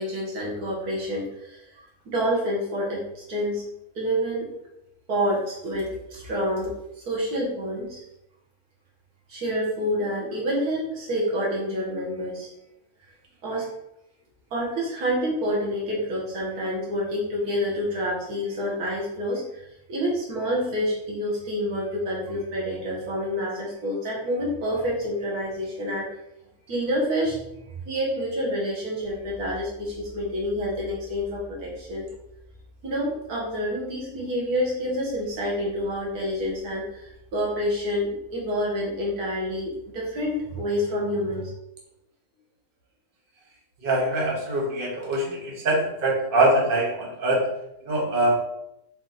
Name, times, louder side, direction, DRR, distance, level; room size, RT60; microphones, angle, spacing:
voice 1, 0.0-3.6 4.0-4.5 5.1-6.7 7.1-8.0 9.3-12.5 13.4-13.7 14.5-26.1 26.7-32.1 32.8-41.5, equal, 90° right, -4 dB, 1.8 m, -28 dB
voice 2, 43.8-47.4 47.8-48.4, right 1 dB, 40° right, -2 dB, 1.2 m, -23 dB
4.5 x 2.9 x 4.0 m, 0.83 s
omnidirectional pair, 1.6 m